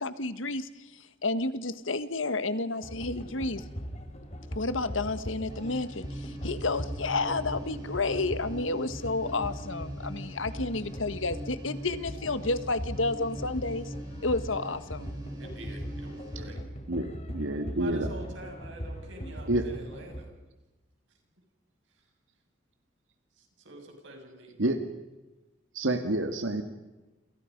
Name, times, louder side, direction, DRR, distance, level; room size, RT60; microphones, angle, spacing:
voice 1, 0.0-3.6 4.5-13.9 14.2-15.1, left 3 dB, 80° left, 12 dB, 1.6 m, -31 dB
sound 1, 2.8-20.3, equal, 35° left, 4.2 m, -40 dB
sound 2, 5.5-16.4, equal, 20° right, 6.9 m, -42 dB
voice 2, 15.4-16.6 17.8-20.3 23.4-24.6, right 1 dB, 70° right, 3 dB, 7.2 m, -46 dB
voice 3, 16.9-18.1 19.5-19.7 24.6-24.9 25.7-26.6, right 1 dB, 85° right, 6 dB, 2.0 m, -28 dB
29.0 x 28.5 x 5.4 m, 1.1 s
head